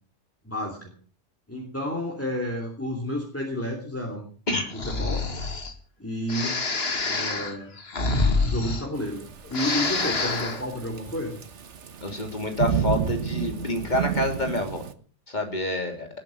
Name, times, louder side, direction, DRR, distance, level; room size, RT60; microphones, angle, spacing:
voice 1, 0.4-0.9 1.5-4.3 4.8-5.2 6.0-6.6 7.0-7.7 8.4-11.4, equal, 10° left, 0 dB, 3.1 m, -31 dB
Breathing, 4.7-5.7 6.3-9.2 9.5-10.6, left 3 dB, 60° left, 2.0 m, -27 dB
Thunderstorm / Rain, 9.0-14.9, right 8 dB, 80° right, 1.5 m, -31 dB
voice 2, 12.0-14.8 15.3-16.1, left 1 dB, 40° left, 4 dB, 3.2 m, -27 dB
19.5 x 9.2 x 6.4 m, 0.43 s
omnidirectional pair, 1.2 m